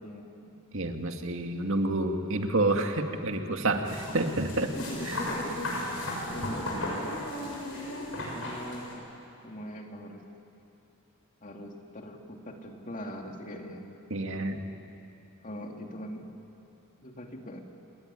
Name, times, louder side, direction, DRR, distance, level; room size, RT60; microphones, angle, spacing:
voice 1, 0.0-0.6 4.7-7.3 8.3-9.1 9.4-10.2 11.4-14.0 15.4-16.3 17.0-17.6, equal, 35° left, 2 dB, 2.6 m, -40 dB
voice 2, 0.7-4.7 5.1-5.2 14.1-14.6, right 2 dB, 65° right, 4 dB, 2.1 m, -29 dB
sound 1, 3.8-8.9, left 1 dB, 70° left, 7.0 m, -35 dB
29.0 x 20.0 x 9.9 m, 2.9 s
head